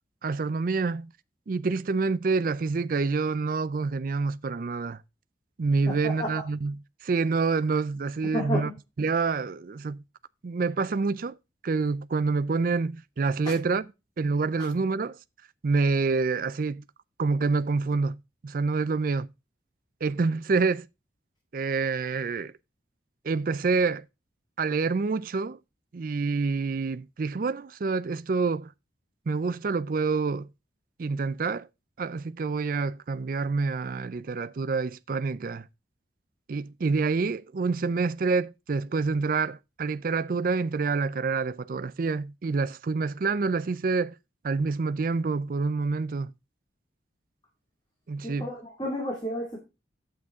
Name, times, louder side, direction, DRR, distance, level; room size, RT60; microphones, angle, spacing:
voice 1, 0.2-1.1 1.5-5.0 5.6-8.7 9.0-10.0 10.4-11.4 11.6-13.9 14.2-15.2 15.6-16.8 17.2-18.2 18.4-19.3 20.0-20.9 21.5-22.5 23.2-24.0 24.6-25.6 25.9-28.7 29.3-30.5 31.0-31.7 32.0-35.7 36.5-44.1 44.4-46.3 48.1-48.5, right 4 dB, 50° right, 0.4 m, -27 dB
voice 2, 5.9-6.3 8.2-8.7 48.2-49.6, equal, 25° left, 2.3 m, -31 dB
9.6 x 7.9 x 3.6 m
head